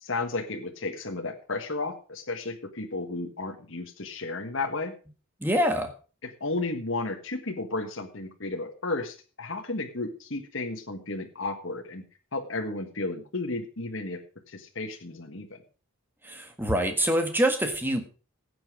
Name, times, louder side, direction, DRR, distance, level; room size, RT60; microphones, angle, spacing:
voice 1, 0.0-4.9 6.2-12.0 12.3-14.2 14.5-15.6, left 3 dB, 60° left, 4 dB, 1.5 m, -33 dB
voice 2, 5.4-5.9 16.2-18.1, equal, 10° right, 5 dB, 1.6 m, -25 dB
14.5 x 8.3 x 4.8 m, 0.36 s
head